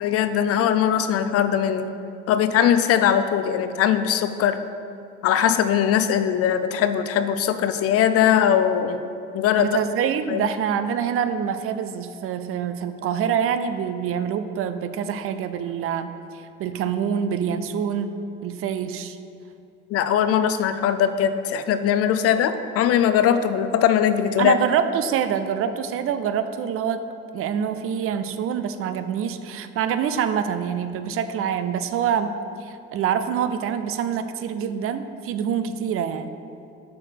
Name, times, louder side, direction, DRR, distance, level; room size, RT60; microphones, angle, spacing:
voice 1, 0.0-1.9 2.3-4.6 5.2-9.0 9.3-9.8 10.3-10.5 19.9-24.6, left 9 dB, 55° left, 10 dB, 0.5 m, -20 dB
voice 2, 9.6-16.1 16.6-19.2 24.4-27.0 27.3-32.3 32.6-36.3, right 8 dB, 50° right, 10 dB, 0.5 m, -26 dB
5.9 x 4.6 x 6.2 m, 2.7 s
supercardioid pair, 100°, 29 cm